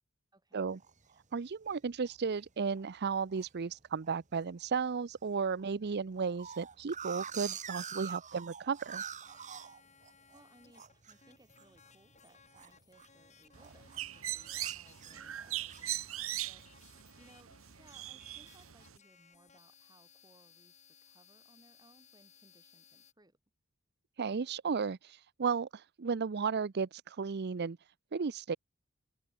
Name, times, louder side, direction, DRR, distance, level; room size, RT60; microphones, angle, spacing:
voice 1, 0.3-0.7 10.3-23.4, right 1 dB, 20° right, 4.7 m, -65 dB
sound 1, 0.8-1.2 1.7-1.8 2.1-2.4 2.8-3.5 4.0-4.4 4.8-4.9 5.2-5.3 5.6-10.4 10.7-13.3 13.6-14.1 14.6-16.0, right 7 dB, 35° right, 1.9 m, -45 dB
voice 2, 1.3-9.0 24.2-25.0 25.4-27.8 28.1-28.6, right 5 dB, 50° right, 0.6 m, -34 dB
sound 2, 9.3-23.1, left 6 dB, 35° left, 6.4 m, -63 dB
Bird, 13.5-19.0, right 14 dB, 75° right, 1.3 m, -40 dB
open air
head